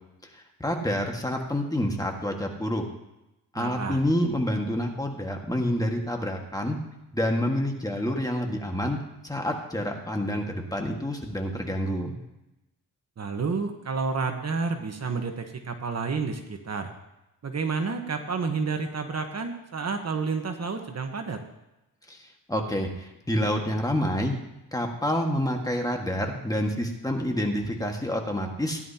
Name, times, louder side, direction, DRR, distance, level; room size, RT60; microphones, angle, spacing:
voice 1, 0.3-2.8 3.5-6.8 7.1-12.1 22.1-24.3 24.7-28.8, equal, 10° left, 2 dB, 1.7 m, -28 dB
voice 2, 3.5-4.0 13.2-16.9 17.4-21.4, right 4 dB, 45° right, 5 dB, 1.2 m, -30 dB
16.5 x 11.0 x 2.9 m, 0.94 s
cardioid pair, 100°, 36 cm